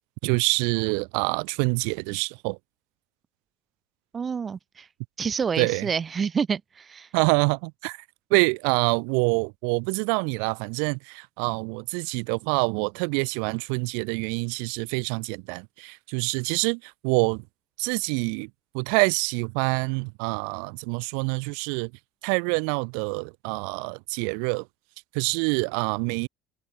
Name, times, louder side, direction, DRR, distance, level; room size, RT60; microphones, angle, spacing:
voice 1, 0.2-2.6 5.6-5.9 7.1-8.0 8.3-17.4 17.8-18.5 18.7-21.9 22.2-24.6 25.1-26.3, right 40 dB or more, 65° right, 2.7 m, -26 dB
voice 2, 4.1-4.9 5.2-7.1, right 6 dB, 30° right, 2.9 m, -28 dB
figure-of-eight pair, 65°, 0 cm